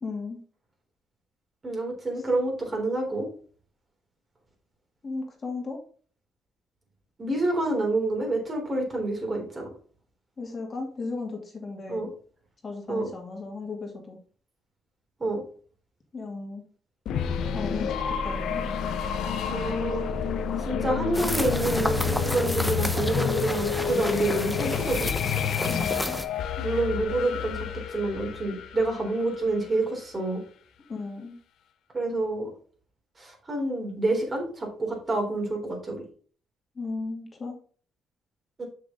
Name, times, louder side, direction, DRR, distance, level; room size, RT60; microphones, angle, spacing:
voice 1, 0.0-0.4 5.0-5.8 10.4-12.1 12.6-14.2 16.1-16.6 17.5-18.7 25.7-26.2 30.9-31.4 36.8-37.6, left 3 dB, 35° left, 1 dB, 2.3 m, -35 dB
voice 2, 1.6-3.3 7.2-9.7 11.9-12.1 12.9-13.1 15.2-15.4 19.5-20.3 20.7-25.1 26.6-30.4 31.9-32.5 33.2-36.0 38.6-38.7, right 2 dB, 30° right, 0 dB, 3.6 m, -28 dB
sound 1, 17.1-29.8, left 7 dB, 75° left, 0.7 m, -29 dB
sound 2, 21.1-26.2, left 1 dB, 5° left, 0.9 m, -31 dB
6.8 x 6.6 x 3.8 m, 0.43 s
cardioid pair, 90°, 0 cm